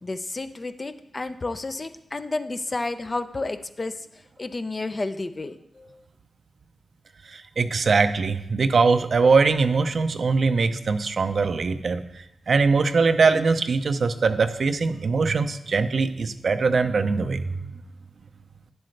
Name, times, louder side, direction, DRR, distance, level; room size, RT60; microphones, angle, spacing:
voice 1, 0.0-4.1 4.4-6.0, left 2 dB, 40° left, 10 dB, 0.6 m, -31 dB
voice 2, 7.3-12.0 12.5-17.4, right 4 dB, 65° right, 10 dB, 0.6 m, -21 dB
9.8 x 7.8 x 3.3 m, 0.83 s
cardioid pair, 45°, 0 cm